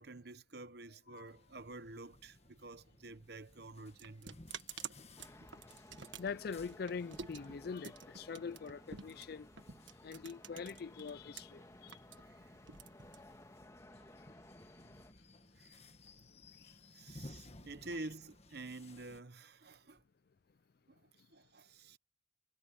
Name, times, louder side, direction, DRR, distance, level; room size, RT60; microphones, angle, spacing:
voice 1, 0.0-4.4 12.2-12.6 15.5-15.9 16.9-20.0 20.9-22.0, right 2 dB, 55° right, 1.0 m, -49 dB
sound 1, 1.3-19.2, left 2 dB, 30° left, 1.6 m, -59 dB
sound 2, 3.2-11.4 11.7-13.7, right 6 dB, 70° right, 1.5 m, -50 dB
sound 3, 5.2-15.1, left 1 dB, 15° left, 1.8 m, -58 dB
voice 2, 6.2-9.5 10.0-11.9, left 5 dB, 50° left, 0.4 m, -43 dB
head